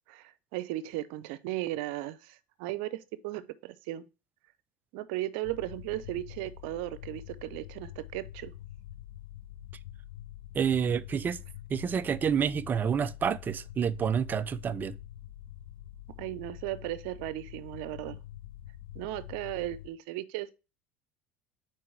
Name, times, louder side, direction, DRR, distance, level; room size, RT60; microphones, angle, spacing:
voice 1, 0.1-4.1 4.9-8.5 16.2-18.2 18.9-20.5, right 15 dB, 70° right, 0.7 m, -36 dB
strange ventilation, 5.4-19.9, left 12 dB, 90° left, 0.7 m, -46 dB
voice 2, 10.5-11.4 11.7-15.0, right 7 dB, 35° right, 0.5 m, -28 dB
4.8 x 4.6 x 5.8 m
supercardioid pair, 90°, 6 cm